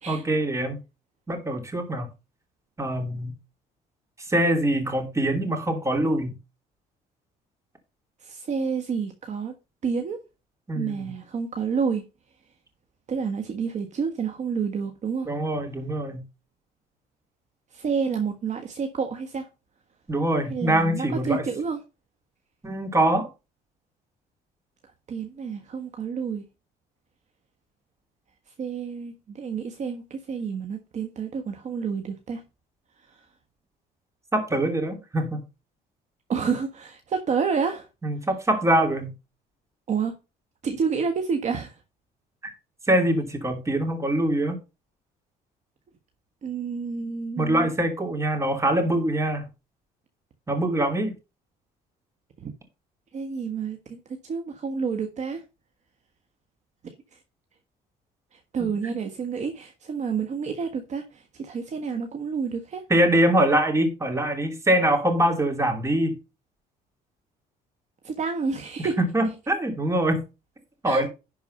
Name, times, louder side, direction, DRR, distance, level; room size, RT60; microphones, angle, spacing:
voice 1, 0.1-0.8 1.3-2.1 2.8-3.3 4.3-6.3 10.7-11.1 15.3-16.2 20.1-21.4 22.6-23.3 34.3-35.4 38.0-39.1 42.9-44.6 47.4-49.5 50.5-51.1 58.6-58.9 62.9-66.1 68.8-70.2 70.8-71.1, right 1 dB, 15° right, 3.1 m, -24 dB
voice 2, 8.2-9.5 9.8-10.2 10.7-12.0 13.1-15.3 17.7-19.5 20.5-21.8 25.1-26.4 28.6-32.4 33.1-33.2 36.3-37.9 39.9-40.2 40.6-41.8 46.4-47.7 52.4-52.5 53.1-55.4 57.1-57.2 58.3-62.8 68.0-69.0 70.8-71.1, right 5 dB, 45° right, 1.4 m, -29 dB
11.0 x 4.6 x 5.5 m
cardioid pair, 110°, 17 cm